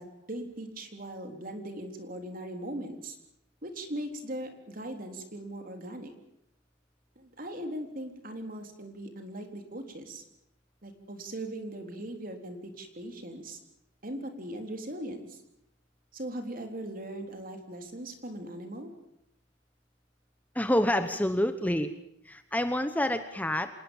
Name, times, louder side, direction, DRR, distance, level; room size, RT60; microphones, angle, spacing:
voice 1, 0.0-3.2 3.6-6.1 7.2-10.2 10.8-13.6 14.0-15.4 16.1-18.9, right 1 dB, 50° right, 5 dB, 3.7 m, -39 dB
voice 2, 20.5-21.9 22.3-23.7, left 1 dB, 10° left, 9 dB, 1.0 m, -27 dB
27.0 x 19.5 x 7.2 m, 0.77 s
head